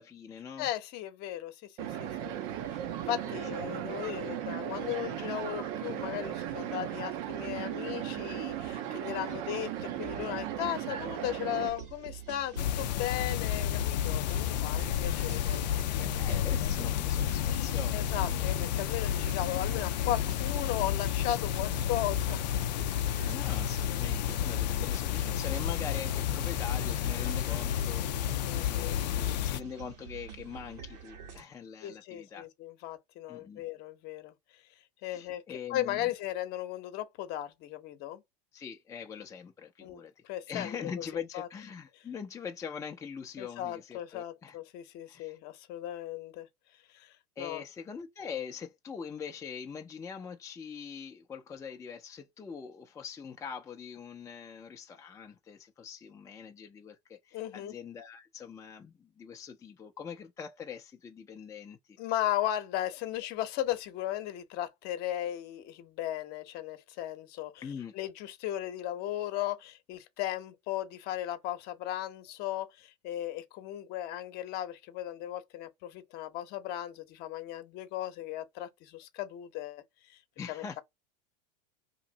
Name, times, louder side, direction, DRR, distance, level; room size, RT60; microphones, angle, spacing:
voice 1, 0.0-0.7 3.2-3.8 4.2-4.4 16.0-18.5 23.2-32.5 33.3-33.6 35.0-36.1 38.5-44.6 45.1-45.4 47.4-62.0 67.6-67.9 80.4-80.8, left 7 dB, 15° left, 0.5 m, -43 dB
voice 2, 0.6-2.4 3.1-15.6 16.0-16.5 17.9-22.5 28.4-28.9 31.8-34.3 35.0-35.4 35.7-38.2 39.8-41.0 41.3-41.5 43.4-46.5 46.9-47.6 57.3-57.7 62.0-67.7 67.9-79.8 80.1-80.2 80.5-80.8, left 13 dB, 50° left, 0.9 m, -36 dB
sound 1, 1.8-11.7, right 11 dB, 55° right, 0.7 m, -36 dB
sound 2, 11.6-31.4, right 8 dB, 75° right, 1.5 m, -46 dB
sound 3, 12.6-29.6, left 10 dB, 90° left, 0.4 m, -31 dB
2.9 x 2.6 x 3.8 m
supercardioid pair, 120°, 21 cm